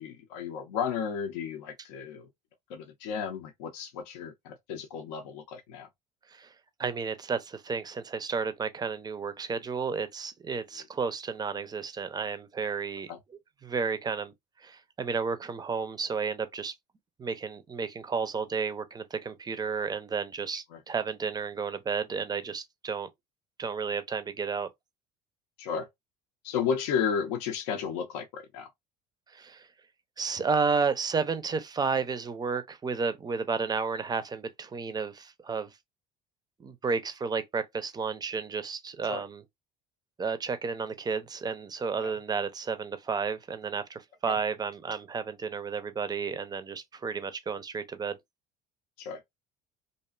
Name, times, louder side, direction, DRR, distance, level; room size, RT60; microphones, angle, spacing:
voice 1, 0.0-2.3 2.7-5.9 13.1-13.2 20.7-20.8 25.6-25.9 26.4-28.7 39.1-39.2 42.0-42.1 44.3-44.4 49.0-49.2, left 7 dB, 70° left, 0.5 m, -33 dB
voice 2, 6.8-13.1 13.6-14.3 14.6-16.7 17.2-23.1 23.6-24.7 29.3-29.7 30.2-35.7 36.6-39.4 40.2-48.2, right 5 dB, 20° right, 0.4 m, -32 dB
2.5 x 2.1 x 2.3 m
hypercardioid pair, 65°, 21 cm